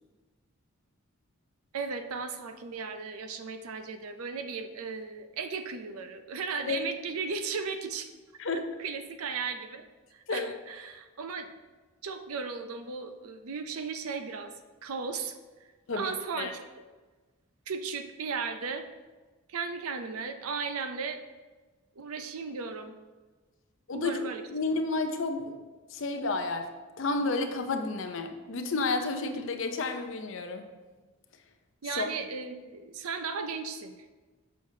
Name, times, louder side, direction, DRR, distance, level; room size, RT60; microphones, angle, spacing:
voice 1, 1.7-8.1 8.8-9.8 10.1-11.5 12.0-14.5 14.8-15.3 15.9-16.6 17.7-18.9 19.5-21.2 22.0-22.9 23.9-24.4 31.8-34.1, right 5 dB, 85° right, 8 dB, 0.5 m, -36 dB
voice 2, 15.9-16.5 23.9-25.6 25.9-26.7 27.0-30.7 31.9-32.1, left 3 dB, 60° left, 6 dB, 0.6 m, -31 dB
6.4 x 6.4 x 2.7 m, 1.3 s
head